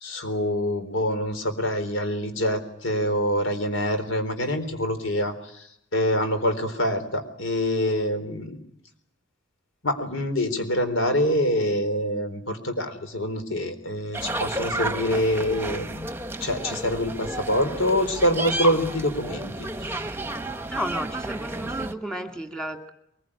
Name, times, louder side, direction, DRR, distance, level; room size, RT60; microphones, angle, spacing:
voice 1, 0.0-5.3 5.9-8.6 9.8-16.1 16.4-19.7, left 1 dB, 75° left, 9 dB, 3.9 m, -25 dB
sound 1, 14.1-21.9, right 1 dB, 10° right, 1.1 m, -32 dB
voice 2, 20.7-22.9, equal, 5° left, 6 dB, 2.2 m, -32 dB
23.0 x 21.5 x 10.0 m, 0.75 s
head